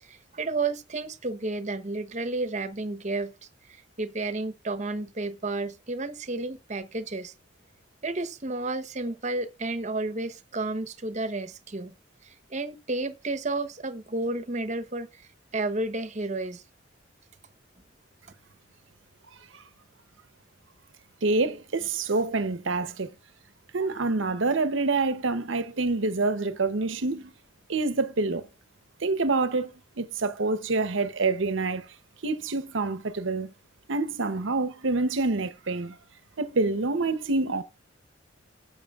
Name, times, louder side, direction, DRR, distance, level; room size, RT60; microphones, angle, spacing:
voice 1, 0.0-3.3 3.7-7.3 8.0-11.9 12.2-15.2 15.5-16.6, right 2 dB, 35° right, 0.9 m, -31 dB
voice 2, 21.2-23.1 23.7-27.3 27.7-28.5 29.0-29.7 30.0-31.9 32.2-33.5 33.9-36.0 36.4-37.6, right 3 dB, 70° right, 0.8 m, -27 dB
18.5 x 7.8 x 2.4 m
head